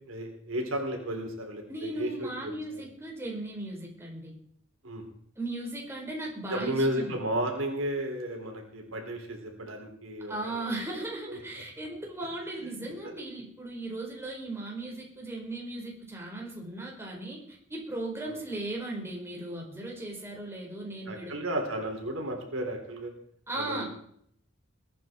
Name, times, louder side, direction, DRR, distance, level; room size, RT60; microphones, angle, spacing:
voice 1, 0.1-2.8 4.8-5.0 6.5-10.7 11.3-11.4 12.8-12.9 18.3-18.4 21.1-23.1 23.5-23.8, right 1 dB, 90° right, 2 dB, 4.0 m, -33 dB
voice 2, 1.7-4.3 5.3-7.1 10.3-21.4 23.5-23.8, right 2 dB, 15° right, -2 dB, 4.9 m, -37 dB
21.0 x 9.9 x 4.6 m, 0.66 s
head